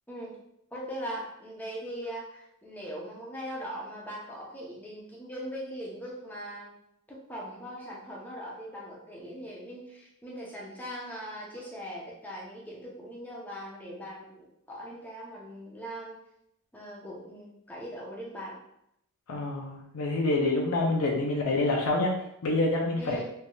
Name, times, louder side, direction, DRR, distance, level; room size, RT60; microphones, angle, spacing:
voice 1, 0.7-6.7 7.1-16.2 16.7-18.6 23.0-23.2, equal, 10° left, -4 dB, 0.7 m, -40 dB
voice 2, 19.3-22.1 22.4-23.2, left 2 dB, 90° left, -1 dB, 0.6 m, -27 dB
3.3 x 2.7 x 2.3 m, 0.76 s
head